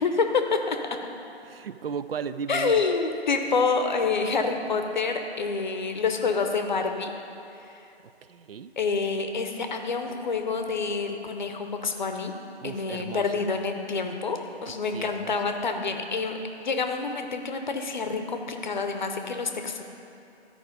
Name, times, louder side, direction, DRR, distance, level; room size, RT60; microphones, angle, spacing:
voice 1, 0.0-0.8 2.5-7.1 7.6-7.8 8.8-12.3 12.6-16.3 16.6-19.8, left 4 dB, 45° left, 5 dB, 0.8 m, -27 dB
voice 2, 1.4-2.8 8.2-8.7 12.6-13.4 14.7-15.3, right 7 dB, 65° right, 13 dB, 0.4 m, -36 dB
13.0 x 4.9 x 5.0 m, 2.7 s
figure-of-eight pair, 150°, 32 cm